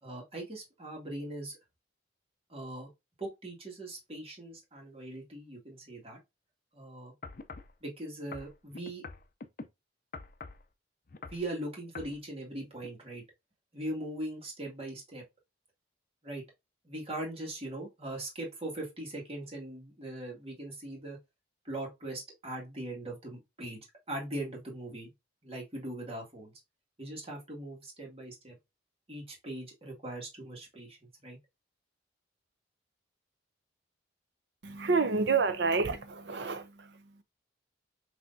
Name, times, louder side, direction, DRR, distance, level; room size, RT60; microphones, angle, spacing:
voice 1, 0.0-1.6 2.5-2.9 3.2-6.2 6.7-7.1 7.8-9.0 11.3-13.2 13.7-15.2 16.2-16.4 16.8-21.2 21.6-23.8 24.1-25.1 25.4-26.5 27.0-28.6 29.1-31.4, right 1 dB, 30° right, 2.0 m, -40 dB
sound 1, 7.2-7.7 8.3-9.7 10.1-10.6 11.1-11.5 11.9-12.2 12.8-12.9, left 4 dB, 45° left, 0.5 m, -44 dB
voice 2, 34.6-37.2, right 4 dB, 65° right, 0.7 m, -29 dB
5.9 x 3.4 x 2.6 m
head